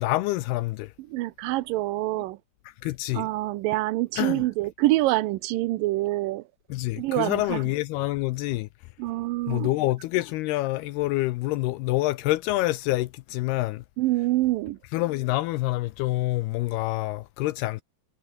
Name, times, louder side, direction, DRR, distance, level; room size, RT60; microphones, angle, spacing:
voice 1, 0.0-0.9 2.7-3.3 4.2-4.4 6.7-8.7 9.5-13.8 14.9-17.8, left 18 dB, 80° left, 2.5 m, -27 dB
voice 2, 1.1-2.4 3.1-6.4 7.0-7.6 9.0-9.7 14.0-14.8, right 18 dB, 90° right, 1.9 m, -26 dB
omnidirectional pair, 4.9 m